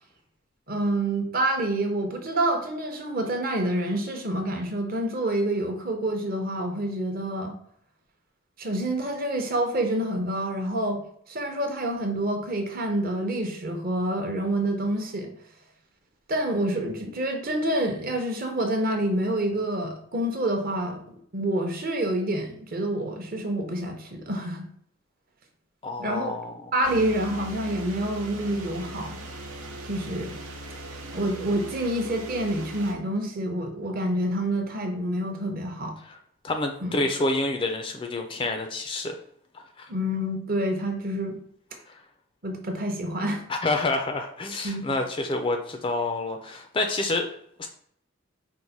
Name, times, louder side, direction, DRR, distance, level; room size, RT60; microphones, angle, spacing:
voice 1, 0.7-7.6 8.6-11.0 11.3-15.3 16.3-21.0 21.3-24.7 26.0-26.3 26.7-29.2 29.9-30.4 31.1-35.9 36.8-37.0 39.9-41.4 42.4-43.4 44.6-44.8, right 1 dB, 40° right, 3 dB, 0.7 m, -27 dB
voice 2, 25.8-26.7 36.0-36.2 36.4-39.1 39.5-39.9 43.5-47.3 47.6-47.7, left 2 dB, 25° left, 5 dB, 0.3 m, -28 dB
sound 1, 26.8-32.9, right 1 dB, 85° right, 0.8 m, -39 dB
4.5 x 2.1 x 4.0 m, 0.65 s
head